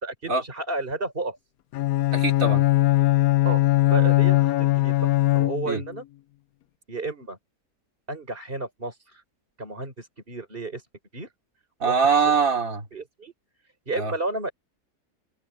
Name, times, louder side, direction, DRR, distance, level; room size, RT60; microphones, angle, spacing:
voice 1, 0.0-1.4 3.4-3.6 3.9-6.0 6.9-7.4 8.1-9.2 9.6-10.8 11.1-11.3 11.8-12.1 12.9-13.3 13.9-14.5, right 2 dB, 35° right, 4.7 m, -32 dB
Bowed string instrument, 1.7-6.0, left 18 dB, 70° left, 1.0 m, -20 dB
voice 2, 2.1-2.6 5.7-5.8 11.8-12.9 13.9-14.1, right 5 dB, 55° right, 3.7 m, -22 dB
open air
omnidirectional pair, 1.7 m